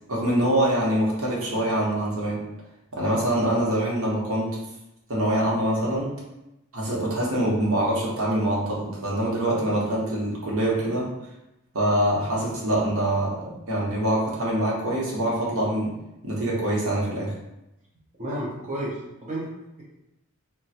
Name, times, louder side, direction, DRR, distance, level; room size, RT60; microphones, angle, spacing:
voice 1, 0.1-2.4 2.9-4.6 5.1-6.1 6.7-11.1 11.7-15.9 16.2-17.3, right 1 dB, 65° right, -4 dB, 0.9 m, -24 dB
voice 2, 18.2-19.5, right 1 dB, 35° right, -7 dB, 0.6 m, -31 dB
2.4 x 2.2 x 4.0 m, 0.91 s
head